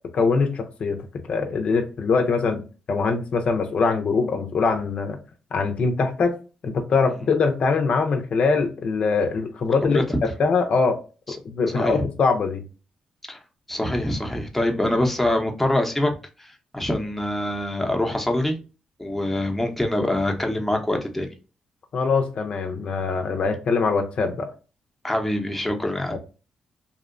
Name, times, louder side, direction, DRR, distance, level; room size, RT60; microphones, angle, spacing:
voice 1, 0.1-1.0 1.3-2.6 2.9-5.2 5.5-6.4 6.6-11.0 11.4-12.6 21.9-24.5 26.1-26.2, left 4 dB, 60° left, 0.5 m, -22 dB
voice 2, 13.7-16.1 16.4-18.6 19.0-21.3 25.0-26.2, left 1 dB, 5° left, 0.7 m, -24 dB
2.7 x 2.1 x 2.5 m
cardioid pair, 70°, 2 cm